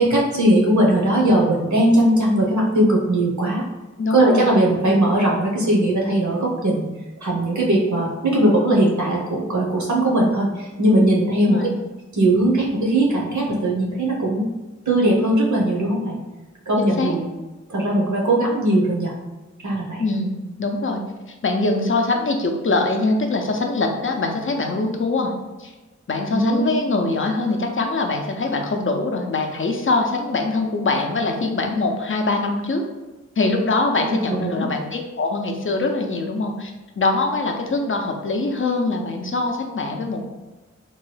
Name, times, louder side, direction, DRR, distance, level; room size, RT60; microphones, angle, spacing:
voice 1, 0.0-3.6 4.1-6.9 7.2-11.6 12.1-14.4 14.9-16.2 16.7-17.3 17.7-19.1 19.6-20.0 26.3-26.6 34.0-34.6, right 1 dB, 75° right, -3 dB, 0.8 m, -19 dB
voice 2, 4.0-4.5 11.4-11.7 17.0-17.1 20.0-21.0 21.3-25.3 25.6-25.7 26.1-32.8 33.4-40.2, left 3 dB, 45° left, 3 dB, 0.5 m, -23 dB
2.9 x 2.2 x 3.2 m, 1.1 s
wide cardioid pair, 50°, 29 cm